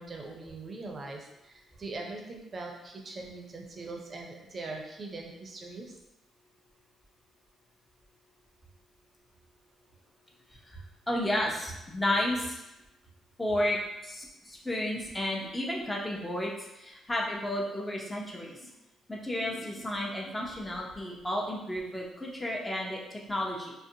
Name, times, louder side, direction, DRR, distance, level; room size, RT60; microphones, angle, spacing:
voice 1, 0.0-5.9, right 3 dB, 40° right, 1 dB, 0.5 m, -41 dB
voice 2, 10.7-12.6 13.4-18.7 19.1-23.7, left 1 dB, 15° left, -3 dB, 0.7 m, -32 dB
2.4 x 2.1 x 2.7 m, 0.94 s
supercardioid pair, 55°, 0 cm